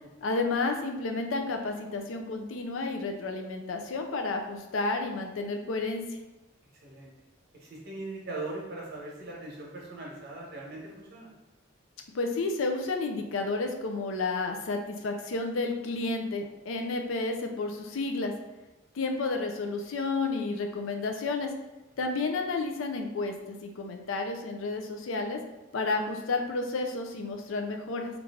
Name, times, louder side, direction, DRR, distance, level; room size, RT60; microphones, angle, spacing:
voice 1, 0.2-6.0 12.1-18.3 18.9-21.5 22.0-25.4 25.7-28.1, left 3 dB, 80° left, 4 dB, 0.5 m, -31 dB
voice 2, 7.5-11.3, right 2 dB, 50° right, -3 dB, 1.0 m, -40 dB
3.2 x 2.5 x 3.5 m, 1.0 s
head